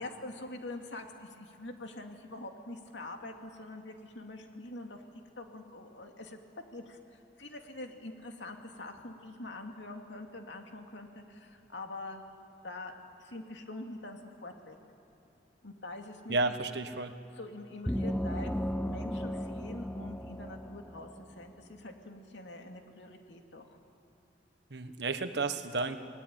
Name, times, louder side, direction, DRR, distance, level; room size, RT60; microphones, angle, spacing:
voice 1, 0.0-5.0 5.4-6.4 6.7-12.2 12.6-12.9 13.2-14.8 15.6-16.5 17.4-18.5 18.8-23.8, left 2 dB, 80° left, 3 dB, 2.6 m, -45 dB
voice 2, 16.3-17.1 24.7-26.0, right 3 dB, 70° right, 9 dB, 1.3 m, -32 dB
sound 1, 17.9-21.4, equal, 5° left, 0.6 m, -35 dB
29.5 x 20.5 x 9.0 m, 2.8 s
head